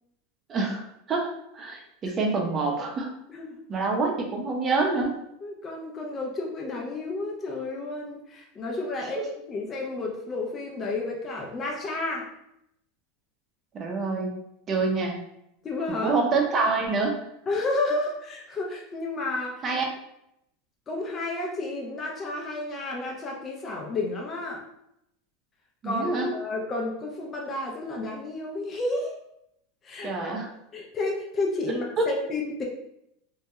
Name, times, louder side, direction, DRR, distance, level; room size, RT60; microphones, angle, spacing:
voice 1, 0.5-1.3 1.5-3.1 3.7-5.2 9.0-9.1 13.7-14.3 14.7-15.2 15.9-17.2 19.6-19.8 25.8-26.3 30.0-30.5 32.0-32.1, right 3 dB, 30° right, 1 dB, 0.6 m, -26 dB
voice 2, 5.4-12.3 15.6-16.1 17.5-19.6 20.9-24.6 25.8-29.1 29.8-30.3 30.7-32.6, left 2 dB, 25° left, -1 dB, 0.5 m, -31 dB
2.2 x 2.1 x 2.9 m, 0.79 s
supercardioid pair, 115°, 0 cm